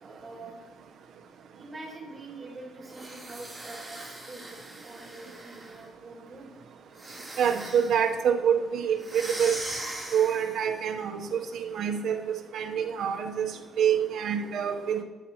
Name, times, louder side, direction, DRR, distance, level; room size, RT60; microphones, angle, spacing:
voice 1, 0.0-0.7 1.5-6.6, right 2 dB, 30° right, -2 dB, 2.0 m, -45 dB
sound 1, 2.9-5.8 6.9-8.1 9.0-10.7, right 1 dB, 10° right, 2.5 m, -40 dB
voice 2, 7.4-9.6 10.1-12.2 12.5-13.5 13.8-15.0, right 8 dB, 70° right, 5 dB, 0.8 m, -26 dB
11.0 x 9.0 x 2.9 m, 1.2 s
cardioid pair, 90°, 0 cm